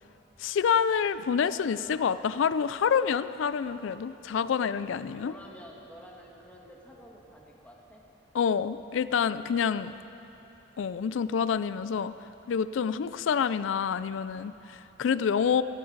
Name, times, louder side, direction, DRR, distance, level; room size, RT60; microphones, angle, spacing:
voice 1, 0.4-5.3 8.3-9.9 10.8-12.1 12.5-15.6, left 7 dB, 80° left, 14 dB, 0.4 m, -27 dB
voice 2, 4.7-8.0, equal, 5° left, -1 dB, 1.6 m, -50 dB
16.5 x 16.0 x 4.0 m, 3.0 s
head